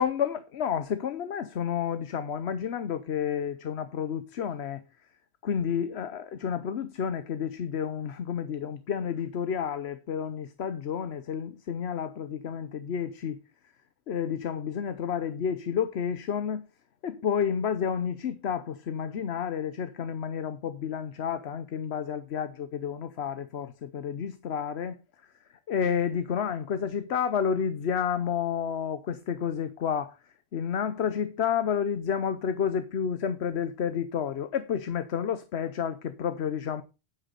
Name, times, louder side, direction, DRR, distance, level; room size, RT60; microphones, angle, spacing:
voice 1, 0.0-4.8 5.4-13.4 14.1-16.6 17.0-25.0 25.7-30.2 30.5-36.8, left 7 dB, 90° left, 1.1 m, -30 dB
9.8 x 8.2 x 4.0 m
omnidirectional pair, 1.1 m